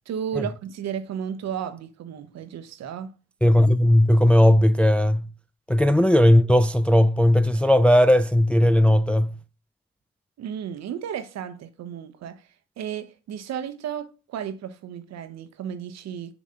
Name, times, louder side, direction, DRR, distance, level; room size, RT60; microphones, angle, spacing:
voice 1, 0.1-3.1 10.4-12.5 12.8-16.3, right 8 dB, 60° right, 1.0 m, -33 dB
voice 2, 3.4-5.3 5.7-9.3, left 1 dB, 5° left, 0.4 m, -17 dB
6.8 x 3.1 x 5.2 m
supercardioid pair, 65°, 31 cm